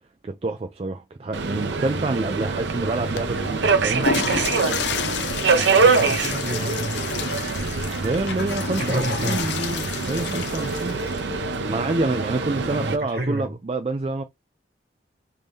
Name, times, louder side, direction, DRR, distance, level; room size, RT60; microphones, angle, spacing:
voice 1, 0.2-4.1 8.0-11.0 11.7-14.2, right 2 dB, 35° right, 0.4 m, -27 dB
Subway metro underground, 1.3-13.0, right 4 dB, 85° right, 0.6 m, -24 dB
Water / Toilet flush, 3.0-11.4, left 6 dB, 75° left, 0.5 m, -30 dB
voice 2, 5.8-7.0 8.8-9.5 12.7-13.6, right 1 dB, 55° right, 1.5 m, -29 dB
3.6 x 2.7 x 3.1 m
head